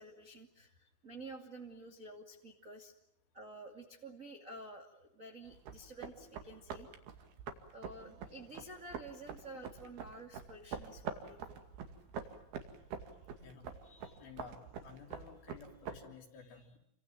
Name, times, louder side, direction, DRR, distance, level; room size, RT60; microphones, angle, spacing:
voice 1, 0.0-2.9 3.3-6.9 7.7-11.6, right 2 dB, 30° right, 2 dB, 1.4 m, -51 dB
sound 1, 5.5-16.0, right 6 dB, 60° right, 3.8 m, -46 dB
sound 2, 7.7-8.9 9.3-9.5 11.4-11.5 12.3-15.3 15.6-16.1, right 5 dB, 85° right, 6.9 m, -68 dB
voice 2, 13.4-16.8, left 5 dB, 50° left, 3 dB, 4.7 m, -54 dB
29.0 x 26.0 x 7.7 m, 0.77 s
omnidirectional pair, 5.7 m